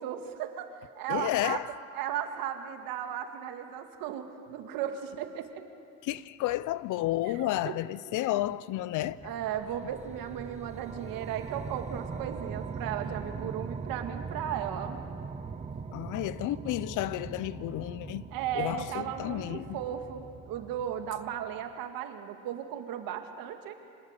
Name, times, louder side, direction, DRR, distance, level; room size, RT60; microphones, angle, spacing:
voice 1, 0.0-1.6 1.9-5.6 7.3-7.7 9.2-15.0 18.3-23.7, right 9 dB, 70° right, 2.2 m, -36 dB
voice 2, 1.1-1.7 6.0-9.3 15.9-18.3 18.5-19.8, left 15 dB, 60° left, 0.7 m, -31 dB
sound 1, 9.0-21.5, right 5 dB, 20° right, 0.8 m, -41 dB
25.5 x 18.0 x 8.2 m
cardioid pair, 130°, 35 cm